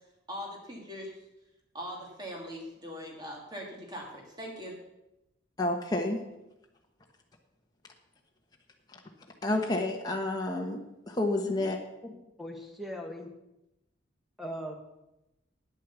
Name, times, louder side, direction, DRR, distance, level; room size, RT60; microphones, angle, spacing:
voice 1, 0.3-1.1 1.7-4.7, equal, 20° right, -1 dB, 2.7 m, -41 dB
voice 2, 5.6-6.2 9.4-10.8 11.1-11.8, left 2 dB, 20° left, 0 dB, 1.1 m, -29 dB
voice 3, 12.4-13.3 14.4-14.8, equal, ahead, 1 dB, 1.5 m, -39 dB
9.7 x 8.5 x 7.1 m, 0.92 s
head